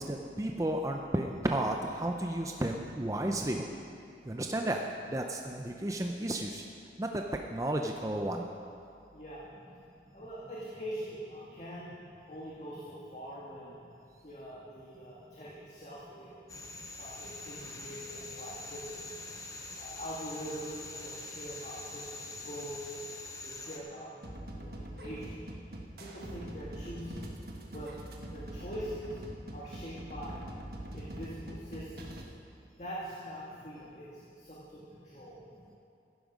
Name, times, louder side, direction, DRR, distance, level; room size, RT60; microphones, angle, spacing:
voice 1, 0.0-3.7 4.3-4.8 5.1-6.6 7.0-7.2 7.5-8.4, right 1 dB, 20° right, 2 dB, 0.5 m, -32 dB
voice 2, 9.1-9.5 10.1-11.9 12.3-13.8 14.2-16.3 17.0-19.2 19.8-22.8 23.4-24.1 24.5-25.4 26.0-27.2 27.7-27.9 28.3-29.2 29.5-30.4 30.9-32.0 32.8-34.1 34.4-35.4, equal, 40° left, -6 dB, 1.9 m, -43 dB
sound 1, 16.5-23.8, left 2 dB, 20° left, 1.0 m, -44 dB
sound 2, 24.2-32.2, right 1 dB, 60° right, 1.4 m, -43 dB
14.5 x 11.0 x 5.1 m, 2.5 s
head